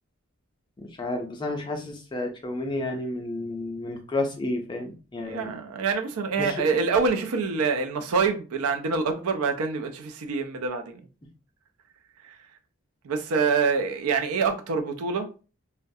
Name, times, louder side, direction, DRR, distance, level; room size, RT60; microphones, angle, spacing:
voice 1, 0.8-5.6 6.4-6.6, left 2 dB, 20° left, 0.4 m, -31 dB
voice 2, 5.2-11.0 12.2-12.4 13.0-15.3, right 5 dB, 90° right, 0.4 m, -26 dB
2.3 x 2.1 x 2.6 m
head